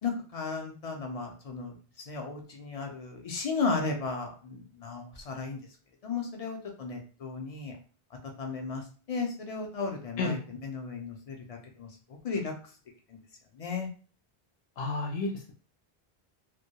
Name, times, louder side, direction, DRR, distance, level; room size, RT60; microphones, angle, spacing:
voice 1, 0.0-5.6 6.0-7.7 8.4-11.9 12.2-12.5 13.1-13.2 13.6-13.9, left 4 dB, 50° left, 2 dB, 0.5 m, -35 dB
voice 2, 14.8-15.5, left 3 dB, 90° left, -1 dB, 0.8 m, -31 dB
2.1 x 2.1 x 2.7 m, 0.39 s
omnidirectional pair, 1.0 m